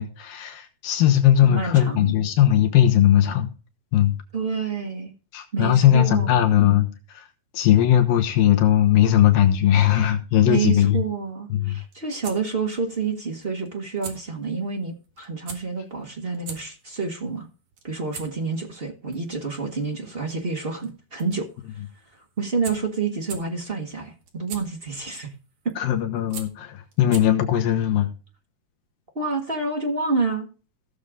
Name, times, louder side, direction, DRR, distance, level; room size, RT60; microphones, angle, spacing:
voice 1, 0.0-3.5 3.9-4.1 5.3-7.3 7.5-11.0 11.5-11.8 25.8-28.1, left 11 dB, 80° left, 3.0 m, -19 dB
voice 2, 1.4-2.2 4.3-5.1 5.5-6.4 10.5-17.5 17.8-21.8 22.1-25.3 29.1-30.5, right 4 dB, 40° right, 0.8 m, -28 dB
sound 1, 11.7-27.6, right 6 dB, 65° right, 3.3 m, -44 dB
16.5 x 6.8 x 3.7 m
omnidirectional pair, 4.0 m